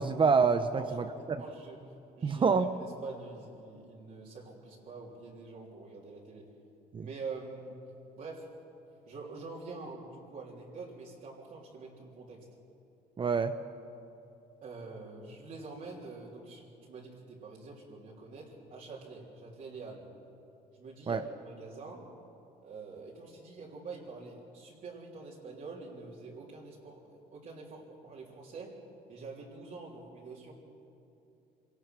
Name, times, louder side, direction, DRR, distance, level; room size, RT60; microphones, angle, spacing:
voice 1, 0.0-1.4 2.2-2.7 6.9-7.1 13.2-13.5 21.1-21.2, right 5 dB, 30° right, 9 dB, 0.7 m, -27 dB
voice 2, 0.7-2.5 2.8-6.5 7.0-7.8 8.2-8.6 9.1-12.4 14.6-20.1 20.7-22.1 22.6-28.8 29.1-30.5, right 3 dB, 55° right, -5 dB, 3.4 m, -46 dB
25.5 x 18.0 x 6.1 m, 2.8 s
cardioid pair, 110°, 17 cm